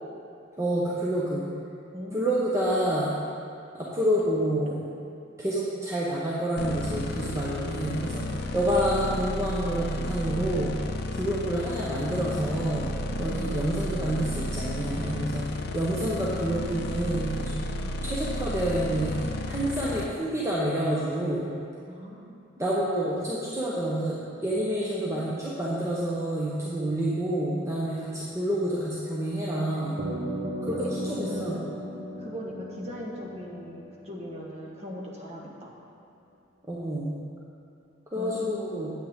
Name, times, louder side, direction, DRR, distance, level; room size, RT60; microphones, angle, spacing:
voice 1, 0.6-1.5 2.1-3.1 3.7-4.9 5.4-8.3 8.5-10.7 11.1-12.9 13.2-15.5 15.7-17.6 18.0-21.5 22.6-30.0 30.6-31.6 36.7-37.2 38.1-38.9, right 1 dB, 15° right, -7 dB, 0.8 m, -28 dB
voice 2, 1.9-2.5 13.3-13.6 17.8-17.9 21.9-22.4 30.8-31.8 32.2-35.7 38.1-38.7, equal, 35° right, -3 dB, 1.3 m, -40 dB
sound 1, 6.6-20.1, left 1 dB, 55° left, 0.5 m, -33 dB
sound 2, 30.0-34.6, equal, 50° right, 1.0 m, -36 dB
8.6 x 8.4 x 3.6 m, 2.5 s
head